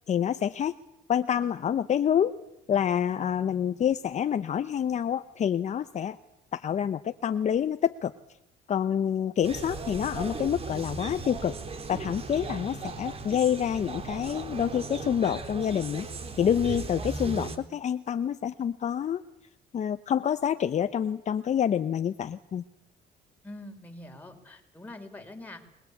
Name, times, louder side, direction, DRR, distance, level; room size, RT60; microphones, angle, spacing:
voice 1, 0.1-0.7 1.1-2.3 2.7-6.2 6.5-8.1 8.7-11.5 11.9-16.1 16.4-19.2 19.7-22.6, left 9 dB, 45° left, 10 dB, 1.0 m, -27 dB
sound 1, 9.4-17.6, right 4 dB, 35° right, 3.4 m, -37 dB
voice 2, 23.4-25.6, left 1 dB, 10° left, 3 dB, 5.3 m, -44 dB
29.0 x 21.5 x 8.6 m, 0.85 s
cardioid pair, 110°, 17 cm